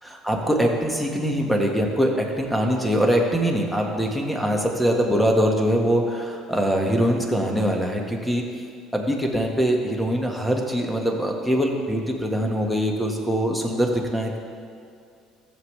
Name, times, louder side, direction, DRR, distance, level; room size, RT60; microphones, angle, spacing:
voice 1, 0.0-8.4 8.9-14.4, equal, ahead, 1 dB, 1.7 m, -23 dB
14.5 x 7.2 x 3.4 m, 2.4 s
hypercardioid pair, 70°, 0 cm